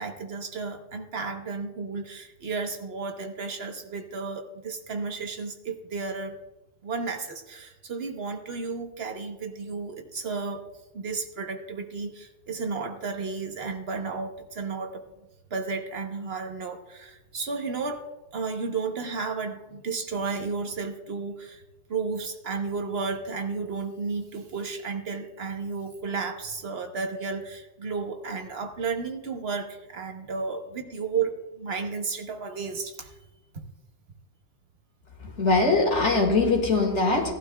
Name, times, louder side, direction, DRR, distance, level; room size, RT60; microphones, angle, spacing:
voice 1, 0.0-6.4 6.8-10.6 10.9-15.0 15.5-21.6 21.9-33.1, right 4 dB, 60° right, 4 dB, 1.2 m, -33 dB
voice 2, 35.2-37.3, left 3 dB, 80° left, 1 dB, 2.3 m, -22 dB
17.5 x 12.0 x 2.3 m, 1.1 s
omnidirectional pair, 1.2 m